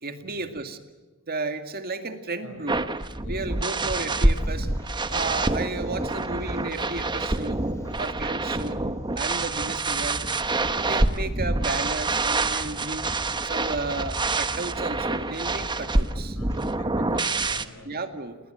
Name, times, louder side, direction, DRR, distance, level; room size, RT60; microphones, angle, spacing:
voice 1, 0.0-0.8 1.3-2.8 3.3-4.7 5.1-7.6 8.0-8.8 9.2-10.2 10.7-13.1 13.4-16.4 17.9-18.4, right 3 dB, 45° right, 7 dB, 2.2 m, -33 dB
voice 2, 2.4-2.7 3.2-3.6 7.7-8.1 16.4-18.0, left 1 dB, 80° left, 8 dB, 6.3 m, -44 dB
sound 1, 2.7-17.6, right 2 dB, 20° right, 1.1 m, -27 dB
sound 2, 3.8-16.8, equal, 15° left, 3.6 m, -42 dB
29.0 x 20.5 x 8.0 m, 1.2 s
head